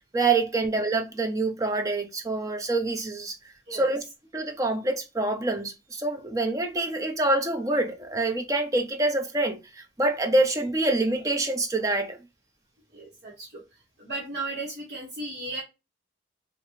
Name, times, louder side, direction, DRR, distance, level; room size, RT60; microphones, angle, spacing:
voice 1, 0.1-3.4 3.7-4.0 4.3-12.2, right 2 dB, 20° right, 0.5 m, -26 dB
voice 2, 12.9-13.6 14.0-15.6, right 2 dB, 60° right, 1.3 m, -35 dB
3.2 x 2.4 x 3.0 m
head